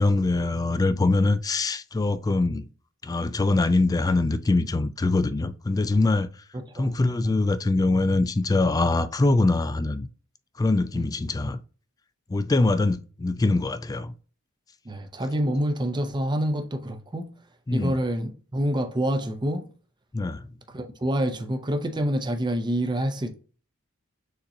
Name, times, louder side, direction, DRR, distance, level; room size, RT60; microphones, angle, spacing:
voice 1, 0.0-2.7 3.0-6.3 6.7-10.1 10.6-11.6 12.3-14.1 17.7-18.0 20.1-20.4, left 2 dB, 15° left, 0.3 m, -23 dB
voice 2, 6.5-6.9 7.2-7.4 10.9-11.0 14.9-17.3 17.7-19.7 20.7-23.4, equal, 20° right, 0.6 m, -27 dB
6.5 x 2.9 x 2.7 m
head